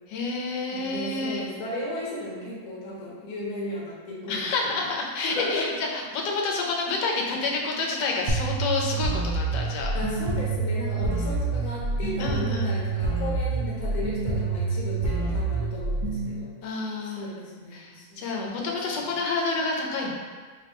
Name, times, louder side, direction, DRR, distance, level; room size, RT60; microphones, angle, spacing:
voice 1, 0.1-1.4 4.3-9.9 10.9-11.1 12.2-12.7 16.6-17.3 17.7-20.1, left 3 dB, 75° left, 0 dB, 1.1 m, -29 dB
voice 2, 0.7-4.8 5.2-5.8 9.9-16.5 17.0-19.2, left 1 dB, 55° left, -6 dB, 1.1 m, -35 dB
sound 1, 8.3-16.3, right 3 dB, 70° right, 1.0 m, -27 dB
3.5 x 2.1 x 4.0 m, 1.5 s
omnidirectional pair, 2.0 m